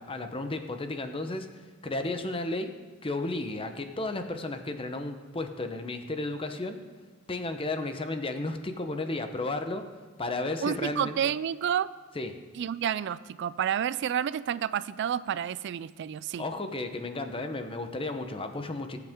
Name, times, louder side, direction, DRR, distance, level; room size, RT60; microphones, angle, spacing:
voice 1, 0.0-2.7 3.0-6.8 7.3-9.9 10.2-11.2 12.1-12.4 16.4-19.0, left 2 dB, 25° left, 7 dB, 0.8 m, -33 dB
voice 2, 10.6-11.9 12.6-16.4, right 9 dB, 55° right, 17 dB, 0.3 m, -30 dB
19.5 x 8.0 x 3.7 m, 1.4 s
head